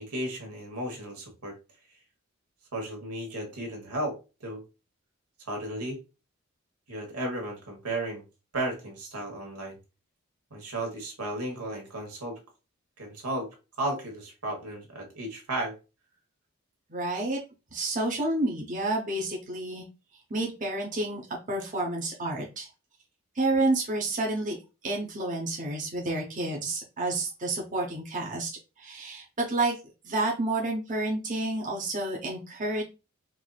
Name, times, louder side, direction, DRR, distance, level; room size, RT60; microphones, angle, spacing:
voice 1, 0.0-1.6 2.7-4.6 5.5-6.0 6.9-8.2 8.5-9.8 10.5-12.4 13.0-13.5 13.8-15.7, right 1 dB, 85° right, 2 dB, 1.4 m, -34 dB
voice 2, 16.9-17.4 17.7-19.8 20.3-21.2 21.5-22.7 23.3-24.6 24.8-28.5 28.8-29.8 30.0-32.8, right 2 dB, 35° right, -1 dB, 0.8 m, -29 dB
4.6 x 2.6 x 2.3 m, 0.29 s
head